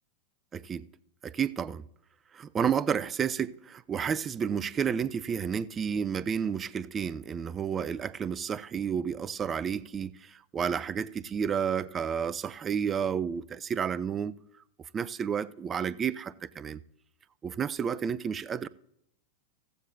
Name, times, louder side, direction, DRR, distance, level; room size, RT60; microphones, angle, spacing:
voice 1, 0.5-0.9 1.2-1.8 2.3-14.4 14.9-16.8 17.4-18.7, right 7 dB, 25° right, 0.4 m, -31 dB
15.0 x 14.5 x 2.6 m
hypercardioid pair, 100°, 0 cm